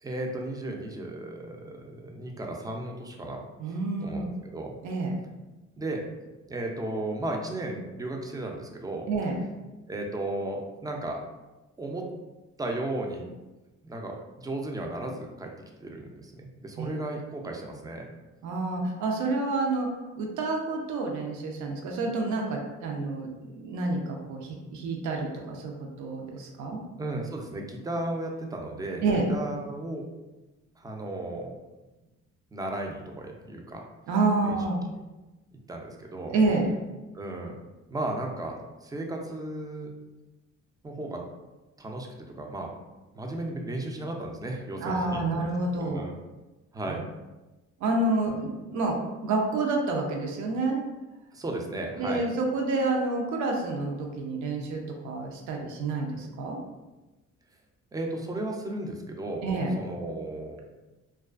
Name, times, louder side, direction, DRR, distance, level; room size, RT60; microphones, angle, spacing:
voice 1, 0.0-3.4 4.0-4.2 4.5-4.8 5.8-6.0 6.5-9.1 9.9-11.2 11.8-12.1 12.6-13.3 13.8-15.5 15.8-18.1 27.0-29.0 29.3-30.0 30.8-31.5 32.5-33.8 34.4-34.6 35.7-36.4 37.1-37.6 37.9-38.6 38.8-39.9 40.8-41.2 41.8-42.7 43.1-45.0 45.8-46.2 46.7-47.0 51.3-52.2 57.9-59.5 59.8-60.6, right 2 dB, 15° right, 1 dB, 0.3 m, -34 dB
voice 2, 3.6-4.3 4.8-5.1 9.1-9.4 16.8-17.0 18.4-19.9 20.2-26.8 29.0-29.3 34.1-34.8 36.3-36.7 44.8-46.0 46.9-47.0 47.8-50.8 52.0-56.6 59.4-59.7, right 3 dB, 70° right, 1 dB, 0.5 m, -28 dB
2.4 x 2.3 x 2.3 m, 1.1 s
cardioid pair, 90°, 30 cm